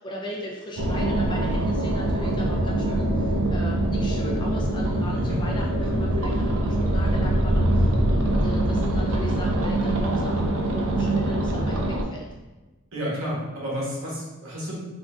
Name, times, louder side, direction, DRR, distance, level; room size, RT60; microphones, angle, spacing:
voice 1, 0.0-12.3, equal, 20° left, -2 dB, 0.4 m, -38 dB
sound 1, 0.8-12.0, right 1 dB, 65° right, 0.4 m, -23 dB
voice 2, 12.9-14.8, equal, 80° right, -6 dB, 1.1 m, -31 dB
3.6 x 2.1 x 2.3 m, 1.2 s
head